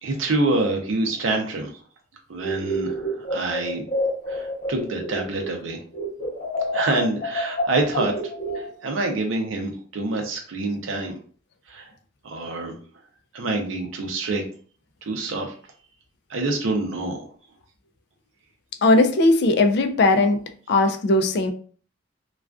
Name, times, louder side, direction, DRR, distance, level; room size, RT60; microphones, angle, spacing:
voice 1, 0.0-1.7 2.3-3.8 4.3-5.8 6.7-8.1 8.5-11.2 11.7-11.9 12.2-12.8 13.3-14.4 15.1-15.5 16.3-17.3, right 2 dB, 75° right, 2 dB, 0.5 m, -26 dB
sound 1, 2.4-5.6 5.9-9.0, equal, 35° left, 0.8 m, -28 dB
voice 2, 18.8-20.4 20.7-21.5, left 2 dB, 60° left, 7 dB, 0.3 m, -18 dB
2.3 x 2.3 x 2.2 m, 0.44 s
head